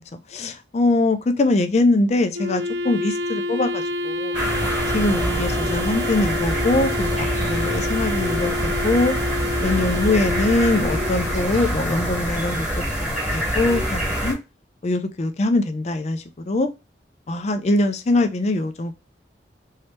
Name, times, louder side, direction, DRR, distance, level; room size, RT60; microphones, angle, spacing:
voice 1, 0.3-4.4 4.9-9.1 9.6-12.7 13.0-14.4 14.8-16.7 17.3-18.9, left 2 dB, 40° left, 0.4 m, -22 dB
Wind instrument woodwind instrument, 2.3-11.6, left 2 dB, 70° right, 0.5 m, -28 dB
sound 1, 4.3-14.3, equal, 5° right, 1.3 m, -25 dB
3.1 x 2.7 x 3.2 m
head